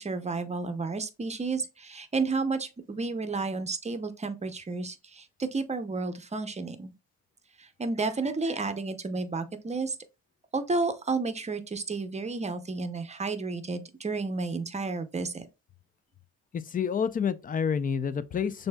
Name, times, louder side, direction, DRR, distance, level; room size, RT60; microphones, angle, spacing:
voice 1, 0.0-6.9 7.6-10.0 10.5-15.5, right 3 dB, 20° right, 0.7 m, -31 dB
voice 2, 16.5-18.7, left 7 dB, 30° left, 0.4 m, -28 dB
6.5 x 2.7 x 2.2 m
cardioid pair, 90°, 30 cm